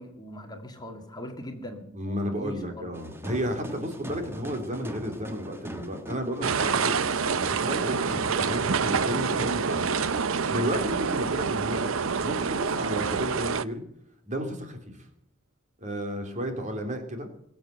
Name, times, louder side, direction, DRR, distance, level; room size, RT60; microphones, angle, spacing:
voice 1, 0.0-2.9 16.2-16.4, equal, 20° left, 4 dB, 2.2 m, -41 dB
voice 2, 1.9-7.0 7.5-10.0 10.5-13.8 14.2-14.9 15.8-17.3, equal, 35° right, 4 dB, 3.1 m, -32 dB
sound 1, 2.9-10.4, equal, 10° right, 1.5 m, -40 dB
sound 2, 6.4-13.6, right 5 dB, 70° right, 0.7 m, -27 dB
22.0 x 7.8 x 8.0 m, 0.76 s
head